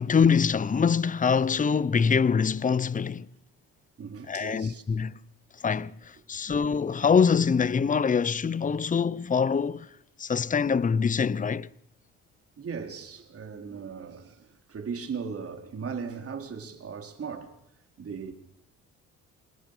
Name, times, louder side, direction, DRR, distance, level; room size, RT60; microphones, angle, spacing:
voice 1, 0.0-3.3 4.3-5.1 5.6-9.9 10.2-11.7, left 6 dB, 25° left, 0.8 m, -24 dB
voice 2, 4.0-4.8 6.5-6.6 12.6-17.5 18.0-18.3, right 6 dB, 50° right, 4.2 m, -38 dB
27.0 x 20.0 x 6.8 m
cardioid pair, 90°, 30 cm